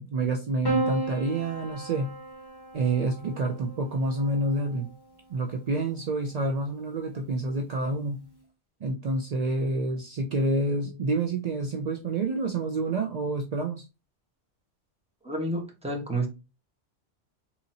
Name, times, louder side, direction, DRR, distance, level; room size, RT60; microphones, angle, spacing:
voice 1, 0.0-2.2 2.7-4.9 5.3-8.2 8.8-13.9, right 2 dB, 60° right, 0.4 m, -28 dB
Piano, 0.6-5.1 6.3-7.0, right 2 dB, 20° left, 1.1 m, -34 dB
voice 2, 15.2-16.3, right 1 dB, 5° right, 1.1 m, -30 dB
3.8 x 2.9 x 2.7 m
omnidirectional pair, 1.2 m